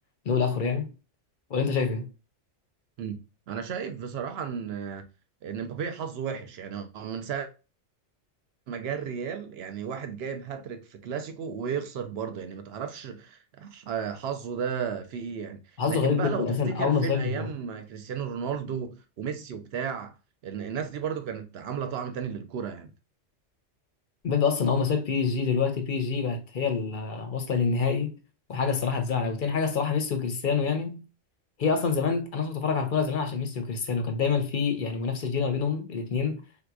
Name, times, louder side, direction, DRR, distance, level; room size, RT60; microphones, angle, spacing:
voice 1, 0.3-0.9 1.5-2.1 15.8-17.5 24.2-28.2 28.5-31.0 31.6-36.4, left 5 dB, 55° left, 0.6 m, -26 dB
voice 2, 3.5-5.0 5.4-7.5 8.7-15.6 15.9-18.9 19.2-20.1 20.4-22.9, right 7 dB, 65° right, 0.8 m, -34 dB
3.6 x 2.8 x 2.3 m
omnidirectional pair, 1.2 m